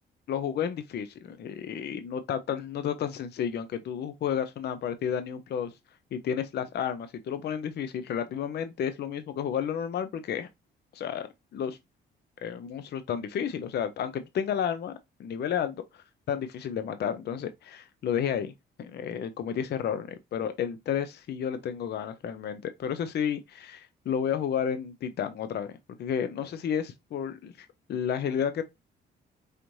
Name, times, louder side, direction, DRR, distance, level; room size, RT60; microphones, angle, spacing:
voice 1, 0.3-5.7 6.1-10.5 10.9-11.8 12.4-14.9 15.2-18.5 18.8-25.7 26.0-28.6, left 8 dB, 55° left, 0.5 m, -31 dB
4.9 x 3.0 x 2.6 m
cardioid pair, 90°, 20 cm